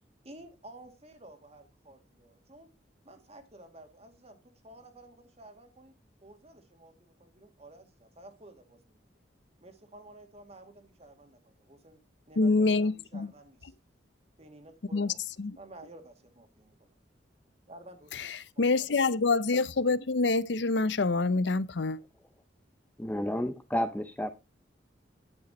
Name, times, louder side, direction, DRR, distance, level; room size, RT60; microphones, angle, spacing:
voice 1, 0.2-2.7 3.0-4.4 4.6-5.9 6.2-9.0 9.6-12.0 12.3-13.7 14.4-15.2 15.5-16.9 17.7-18.3 18.5-18.8, right 1 dB, 35° right, 2.2 m, -52 dB
voice 2, 12.4-13.3 14.9-15.1 15.4-15.6 18.1-22.0, left 3 dB, 75° left, 0.7 m, -26 dB
voice 3, 23.0-24.3, equal, 10° left, 0.7 m, -31 dB
10.5 x 8.6 x 4.2 m
head